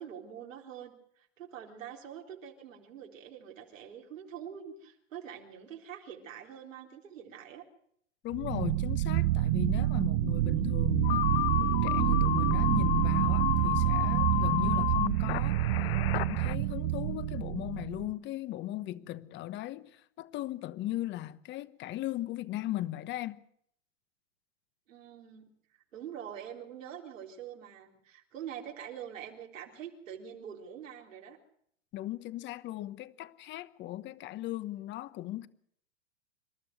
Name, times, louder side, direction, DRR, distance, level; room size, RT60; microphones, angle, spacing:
voice 1, 0.0-7.6 24.9-25.5 25.9-31.4, right 9 dB, 85° right, 3.9 m, -45 dB
voice 2, 8.2-11.3 11.6-15.6 16.1-23.4 31.9-35.5, left 15 dB, 30° left, 1.0 m, -37 dB
sound 1, 8.3-18.1, right 16 dB, 50° right, 0.8 m, -28 dB
sound 2, 11.0-16.6, left 18 dB, 50° left, 0.8 m, -32 dB
27.0 x 12.5 x 8.0 m
hypercardioid pair, 130°, 37 cm